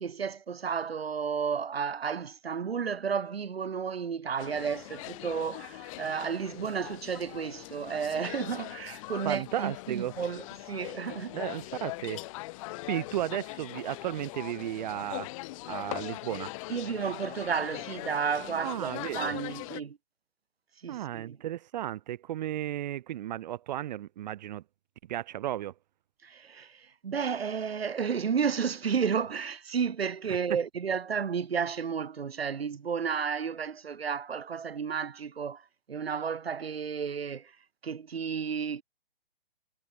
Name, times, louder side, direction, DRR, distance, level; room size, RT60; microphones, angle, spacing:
voice 1, 0.0-11.4 16.7-20.0 20.8-21.4 26.2-37.6 37.8-38.8, right 6 dB, 90° right, 0.8 m, -32 dB
sound 1, 4.4-19.8, left 21 dB, 35° left, 1.9 m, -41 dB
voice 2, 9.2-10.1 11.3-12.2 12.9-15.3 15.7-16.5 18.5-19.4 20.9-24.6 25.1-25.7 30.3-30.6, right 13 dB, 45° right, 2.2 m, -34 dB
hypercardioid pair, 135°, 30 cm